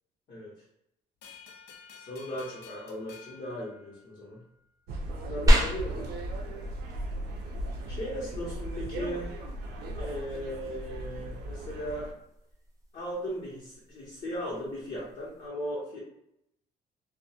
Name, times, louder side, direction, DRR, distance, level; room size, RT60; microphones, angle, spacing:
sound 1, 1.2-4.5, left 6 dB, 85° left, 0.4 m, -51 dB
voice 1, 2.0-4.4 5.2-6.1 7.9-9.4 10.0-12.1 12.9-16.0, equal, 50° left, -7 dB, 0.7 m, -37 dB
sound 2, 4.9-12.1, right 1 dB, 70° right, 0.5 m, -37 dB
sound 3, 5.5-15.5, equal, 20° right, 0.5 m, -32 dB
2.2 x 2.1 x 2.7 m, 0.80 s
cardioid pair, 110°, 17 cm